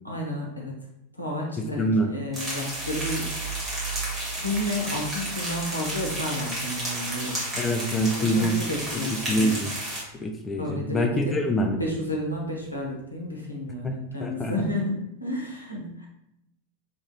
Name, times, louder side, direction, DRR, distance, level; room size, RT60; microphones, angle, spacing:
voice 1, 0.0-0.8 1.2-3.3 4.4-7.5 8.1-9.6 10.6-11.4 11.7-16.1, left 1 dB, 85° left, -2 dB, 0.7 m, -31 dB
voice 2, 1.6-2.1 7.6-8.6 9.3-9.7 10.2-11.8 13.8-13.9 14.2-14.5, equal, 15° left, 3 dB, 0.3 m, -25 dB
sound 1, 2.3-10.0, right 1 dB, 15° right, 1.3 m, -32 dB
sound 2, 2.3-10.6 11.0-13.6, right 6 dB, 55° right, 0.8 m, -41 dB
2.8 x 2.5 x 2.9 m, 0.81 s
figure-of-eight pair, 90°, 0 cm